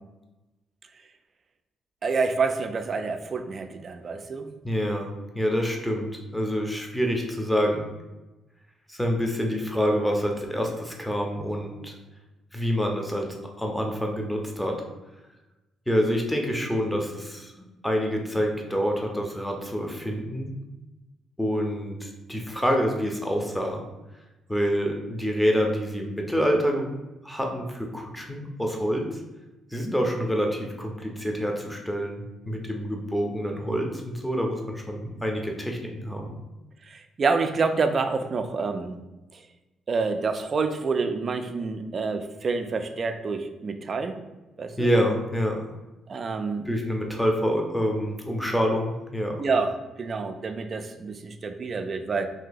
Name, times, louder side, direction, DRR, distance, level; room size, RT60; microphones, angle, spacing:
voice 1, 2.0-4.5 36.9-38.9 39.9-44.2 44.6-44.9 46.1-46.7 49.4-52.3, right 4 dB, 45° right, 8 dB, 0.4 m, -27 dB
voice 2, 4.6-7.9 8.9-11.9 12.5-14.8 15.9-17.5 17.8-20.5 21.4-23.8 24.5-26.9 27.2-29.2 29.7-36.4 44.8-45.6 46.7-49.4, equal, 5° left, 1 dB, 0.7 m, -27 dB
2.7 x 2.7 x 3.9 m, 1.1 s
cardioid pair, 90°, 0 cm